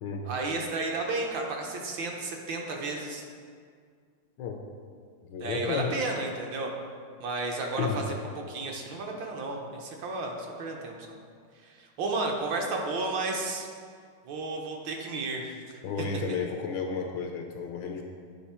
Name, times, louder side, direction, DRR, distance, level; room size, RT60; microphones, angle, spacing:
voice 1, 0.2-3.2 5.4-6.7 7.2-8.0 8.5-11.0 11.6-13.7 14.3-15.8, right 3 dB, 65° right, 1 dB, 1.4 m, -32 dB
voice 2, 5.2-5.9 7.8-8.0 15.8-18.0, left 5 dB, 70° left, 3 dB, 1.2 m, -32 dB
9.3 x 5.2 x 4.3 m, 2.1 s
omnidirectional pair, 2.4 m